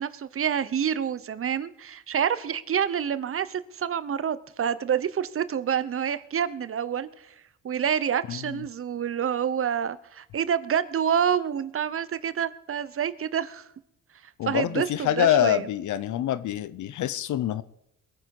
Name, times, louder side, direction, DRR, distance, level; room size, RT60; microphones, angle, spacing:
voice 1, 0.0-7.3 7.6-13.7 14.5-15.7, right 8 dB, 45° right, 1.0 m, -27 dB
voice 2, 8.3-8.6 14.4-17.6, left 11 dB, 75° left, 0.9 m, -25 dB
22.0 x 9.2 x 4.8 m
cardioid pair, 90°, 30 cm